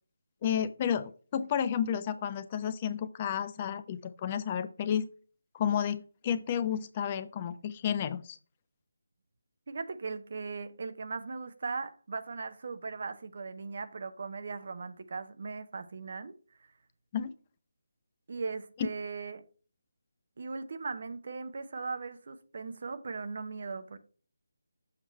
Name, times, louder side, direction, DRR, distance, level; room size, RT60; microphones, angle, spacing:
voice 1, 0.4-5.1 5.5-8.4 17.1-17.3, left 8 dB, 25° left, 0.3 m, -31 dB
voice 2, 9.7-16.3 18.3-19.4 20.4-24.0, right 4 dB, 45° right, 0.6 m, -38 dB
7.3 x 3.0 x 5.4 m
figure-of-eight pair, 150°, 0 cm